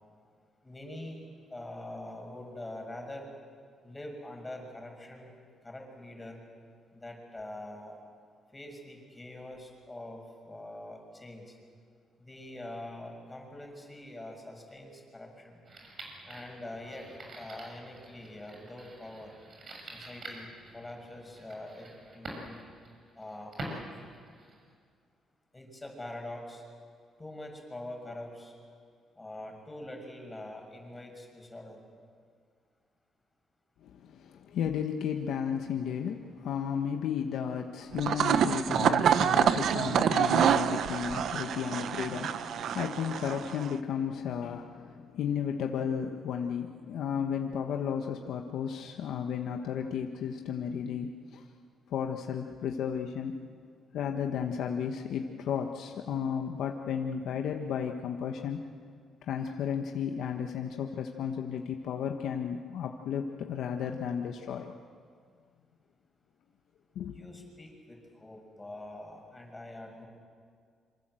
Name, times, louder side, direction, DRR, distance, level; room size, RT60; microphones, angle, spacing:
voice 1, 0.6-1.2 1.5-3.3 3.8-5.3 5.6-6.4 6.9-8.0 8.5-11.5 12.2-15.6 16.3-17.1 17.4-19.3 19.9-21.9 22.1-22.6 23.2-24.1 25.5-26.6 27.2-28.5 29.2-31.8 67.1-70.1, left 1 dB, 15° left, 2 dB, 6.7 m, -44 dB
sound 1, 15.6-24.7, right 1 dB, 45° right, 7.4 m, -46 dB
voice 2, 33.8-51.4 51.9-53.4 53.9-58.6 59.2-64.7 66.9-67.2, left 7 dB, 80° left, 3 dB, 1.3 m, -33 dB
sound 2, 37.9-43.7, right 8 dB, 70° right, 1.1 m, -27 dB
27.0 x 25.0 x 7.8 m, 2.1 s
cardioid pair, 90°, 0 cm